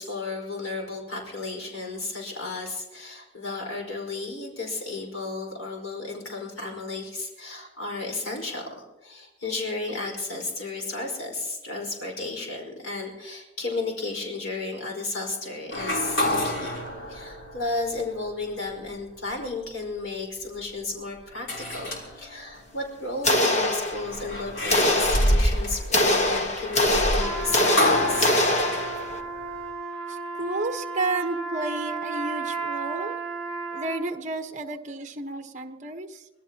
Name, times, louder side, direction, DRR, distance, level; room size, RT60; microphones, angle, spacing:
voice 1, 0.0-16.8 17.1-28.3, left 3 dB, 90° left, 0 dB, 4.9 m, -33 dB
sound 1, 15.7-18.2 18.8-19.0 21.5-22.5 23.9-29.7, left 1 dB, 70° left, 3.6 m, -28 dB
sound 2, 23.2-24.3 24.7-29.2, left 1 dB, 35° left, 1.4 m, -24 dB
Trumpet, 27.2-34.2, right 4 dB, 10° left, 2.3 m, -33 dB
voice 2, 30.1-33.1 33.7-36.3, right 2 dB, 35° right, 6 dB, 1.2 m, -31 dB
25.5 x 18.5 x 2.9 m, 1.1 s
head